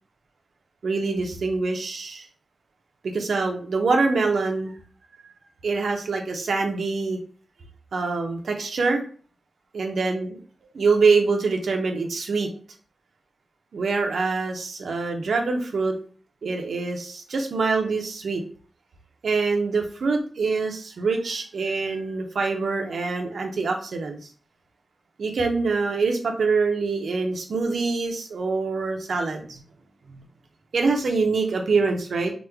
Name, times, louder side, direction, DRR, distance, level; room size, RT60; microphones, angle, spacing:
voice 1, 0.8-2.3 3.0-4.7 5.2-5.3 5.6-7.2 7.9-9.0 9.7-10.4 10.7-12.5 13.7-15.9 16.4-18.4 19.2-24.2 25.2-29.6 30.1-30.2 30.7-32.3, right 4 dB, 85° right, 3 dB, 0.5 m, -25 dB
3.0 x 2.1 x 3.4 m, 0.42 s
wide cardioid pair, 105°, 0 cm